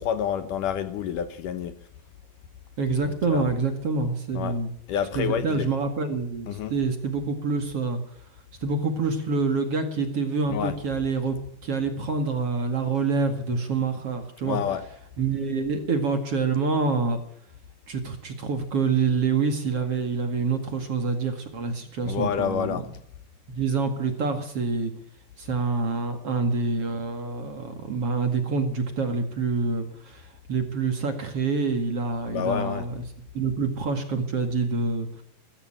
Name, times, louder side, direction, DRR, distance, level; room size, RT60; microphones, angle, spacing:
voice 1, 0.0-1.7 3.3-3.5 4.4-4.6 4.9-5.7 6.5-6.7 10.5-10.7 14.4-14.8 22.0-22.9 32.3-32.9, left 8 dB, 70° left, 11 dB, 2.4 m, -28 dB
voice 2, 2.8-4.7 5.1-8.0 8.6-11.4 11.6-14.6 15.2-17.2 17.9-22.8 23.5-24.9 25.4-33.0 33.3-35.2, right 4 dB, 45° right, 6 dB, 2.5 m, -26 dB
20.0 x 14.5 x 8.9 m, 0.69 s
omnidirectional pair, 4.3 m